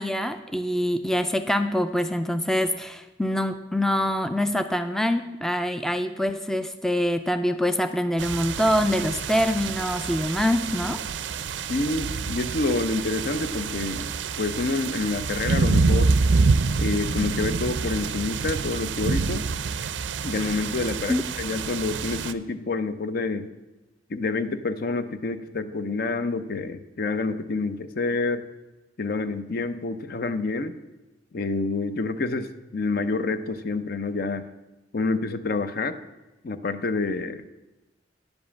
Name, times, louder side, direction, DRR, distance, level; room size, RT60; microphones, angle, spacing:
voice 1, 0.0-11.0 21.1-21.2, equal, 5° left, 9 dB, 0.3 m, -25 dB
sound 1, 8.2-22.3, right 4 dB, 80° right, 0.5 m, -27 dB
voice 2, 11.7-14.1 14.4-16.1 16.8-19.5 20.2-23.5 24.1-28.4 29.0-30.7 31.3-34.4 34.9-36.0 36.4-37.5, left 3 dB, 55° left, 11 dB, 0.6 m, -28 dB
10.0 x 5.3 x 7.1 m, 1.1 s
head